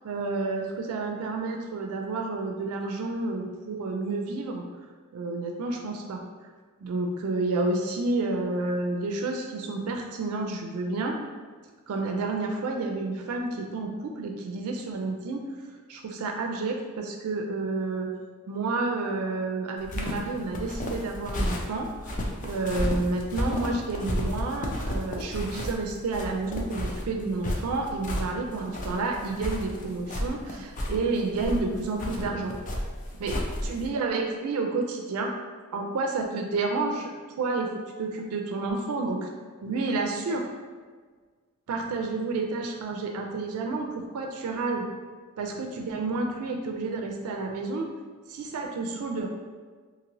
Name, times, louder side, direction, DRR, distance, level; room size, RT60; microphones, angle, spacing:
voice 1, 0.0-4.6 5.1-6.2 6.8-11.2 11.9-15.4 15.9-18.1 18.5-32.5 33.2-35.3 35.7-37.1 37.4-37.7 38.0-39.3 39.6-40.5 41.7-44.9 45.4-47.9 48.3-49.3, right 3 dB, 85° right, 2 dB, 0.3 m, -30 dB
sound 1, 19.8-33.9, left 1 dB, 35° left, 0.4 m, -32 dB
2.9 x 2.7 x 2.6 m, 1.5 s
head